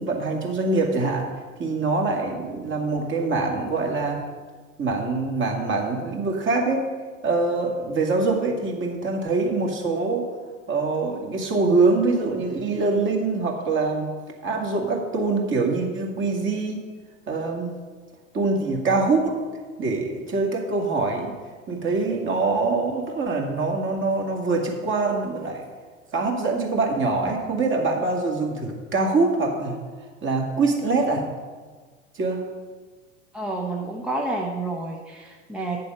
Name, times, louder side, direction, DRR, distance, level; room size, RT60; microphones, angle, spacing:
voice 1, 0.0-1.3 1.6-4.3 4.8-6.9 7.2-10.3 10.7-14.1 14.4-16.9 17.3-17.7 18.3-19.4 19.8-21.3 21.7-25.7 26.1-29.8 30.2-31.3 32.1-32.4, right 3 dB, 30° right, 1 dB, 2.0 m, -24 dB
voice 2, 33.3-35.8, right 2 dB, ahead, 0 dB, 0.7 m, -29 dB
9.5 x 6.8 x 5.4 m, 1.5 s
hypercardioid pair, 100°, 40 cm